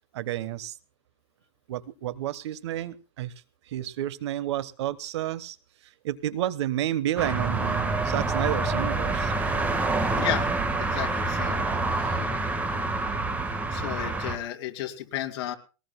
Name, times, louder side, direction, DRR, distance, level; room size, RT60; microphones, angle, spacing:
voice 1, 0.1-0.7 1.7-3.3 3.7-5.6 6.0-9.3, right 13 dB, 65° right, 17 dB, 1.2 m, -30 dB
sound 1, 7.2-14.4, right 2 dB, 10° right, 1.5 m, -27 dB
voice 2, 10.1-10.5 10.8-11.6 11.9-12.3 13.7-15.5, left 12 dB, 50° left, 5 dB, 2.5 m, -33 dB
21.0 x 19.0 x 2.2 m, 0.32 s
supercardioid pair, 155°, 15 cm